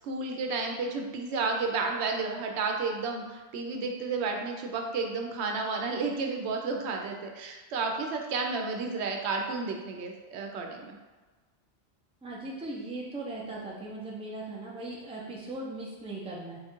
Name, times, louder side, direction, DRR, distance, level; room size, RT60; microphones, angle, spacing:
voice 1, 0.0-10.9, right 4 dB, 85° right, 2 dB, 0.9 m, -32 dB
voice 2, 12.2-16.6, right 2 dB, 5° right, -4 dB, 0.5 m, -38 dB
3.6 x 2.4 x 4.4 m, 1.3 s
omnidirectional pair, 1.1 m